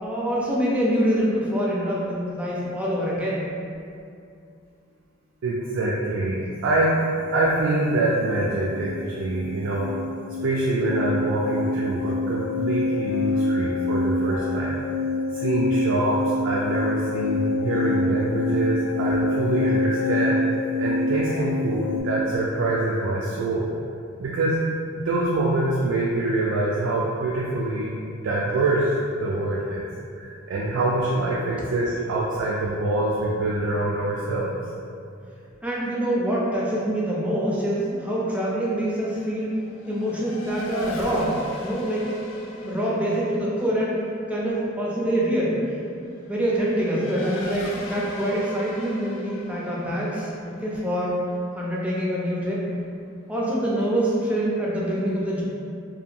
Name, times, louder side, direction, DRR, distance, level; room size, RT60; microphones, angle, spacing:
voice 1, 0.0-3.5 35.6-39.5 39.9-42.1 42.5-44.0 44.3-45.6 46.3-51.2 51.5-52.7 53.3-55.4, equal, 5° right, -6 dB, 0.4 m, -25 dB
voice 2, 5.4-7.0 7.3-9.9 10.4-15.0 15.3-20.4 20.8-23.7 24.2-24.6 24.9-27.9 28.2-29.9 30.1-34.5, right 2 dB, 80° right, -6 dB, 0.3 m, -25 dB
sound 1, 7.2-7.4 7.6-22.0, left 2 dB, 85° left, 0.7 m, -26 dB
Race car auto racing / Accelerating revving vroom, 38.1-52.2, left 1 dB, 70° left, 0.3 m, -41 dB
2.8 x 2.2 x 2.5 m, 2.4 s
head